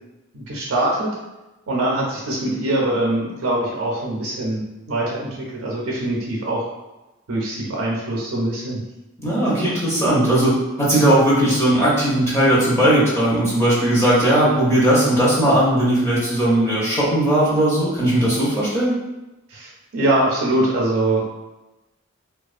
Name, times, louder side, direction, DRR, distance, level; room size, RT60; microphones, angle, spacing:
voice 1, 0.3-1.1 1.7-6.7 7.3-8.8 19.5-21.2, right 1 dB, 80° right, -3 dB, 0.5 m, -23 dB
voice 2, 9.2-18.9, right 1 dB, 10° left, -8 dB, 0.5 m, -18 dB
2.3 x 2.2 x 2.4 m, 1.0 s
head